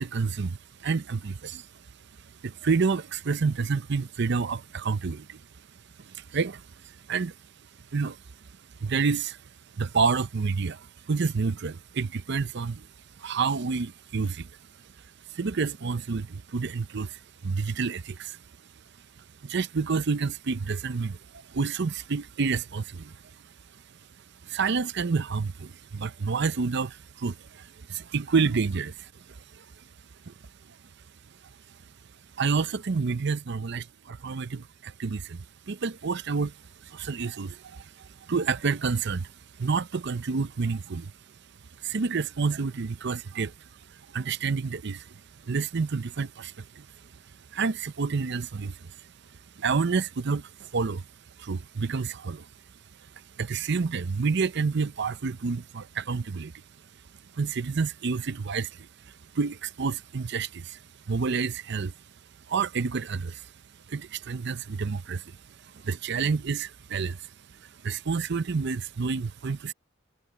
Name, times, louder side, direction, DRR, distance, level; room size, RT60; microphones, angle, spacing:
voice 1, 0.0-1.7 2.2-5.4 6.0-7.3 7.9-8.2 8.8-9.4 9.7-12.9 13.2-14.5 15.3-18.4 19.2-23.2 24.4-29.8 30.3-30.4 30.7-30.8 32.4-39.3 39.6-41.1 41.8-43.5 43.9-46.9 47.5-49.1 49.6-51.1 51.4-52.5 53.2-56.5 57.3-61.9 62.5-63.5 63.9-69.7, right 5 dB, 60° right, 0.6 m, -29 dB
head